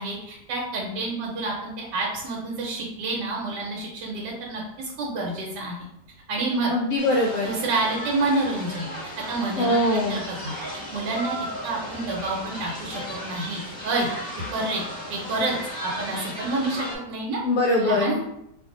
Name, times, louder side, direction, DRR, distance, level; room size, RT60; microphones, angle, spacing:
voice 1, 0.0-5.9 6.3-6.7 7.4-8.9 9.3-11.4 11.6-14.1 14.5-14.8 15.1-15.6 15.8-17.4 17.8-18.2, right 2 dB, 75° right, -2 dB, 1.2 m, -28 dB
voice 2, 6.7-7.5 9.6-10.2 17.4-18.2, left 2 dB, 75° left, -2 dB, 0.7 m, -22 dB
sound 1, 7.0-17.0, equal, 30° left, 0.4 m, -35 dB
2.6 x 2.5 x 3.6 m, 0.78 s
omnidirectional pair, 1.8 m